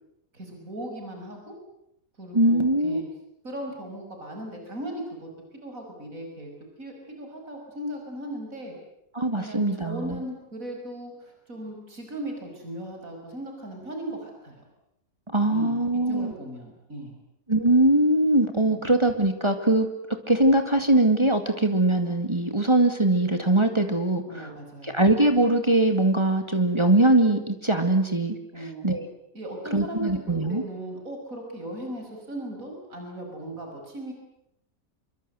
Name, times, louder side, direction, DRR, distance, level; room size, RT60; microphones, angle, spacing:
voice 1, 0.3-1.5 2.2-3.0 3.4-5.3 5.6-6.5 6.8-8.7 9.4-14.6 15.5-17.2 18.7-18.9 24.3-25.0 28.5-28.8 29.3-34.1, right 1 dB, 70° right, 2 dB, 6.3 m, -37 dB
voice 2, 2.3-3.0 9.1-10.2 15.3-16.3 17.5-19.9 20.3-24.5 24.8-29.1 29.7-30.6, right 1 dB, 20° right, 6 dB, 2.3 m, -22 dB
26.5 x 24.0 x 8.0 m, 0.79 s
omnidirectional pair, 1.5 m